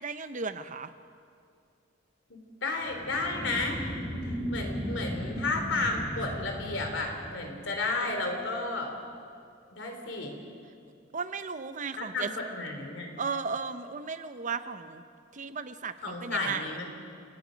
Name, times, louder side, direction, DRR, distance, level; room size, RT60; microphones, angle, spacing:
voice 1, 0.0-0.9 11.1-12.3 13.2-15.0 15.3-16.7, right 5 dB, 40° right, 11 dB, 0.8 m, -35 dB
voice 2, 2.3-3.8 4.3-8.9 9.7-10.3 12.0-13.1 16.0-16.9, left 3 dB, 75° left, 3 dB, 3.5 m, -32 dB
sound 1, 2.8-7.8, equal, ahead, 7.5 m, -36 dB
29.0 x 18.0 x 5.2 m, 2.3 s
head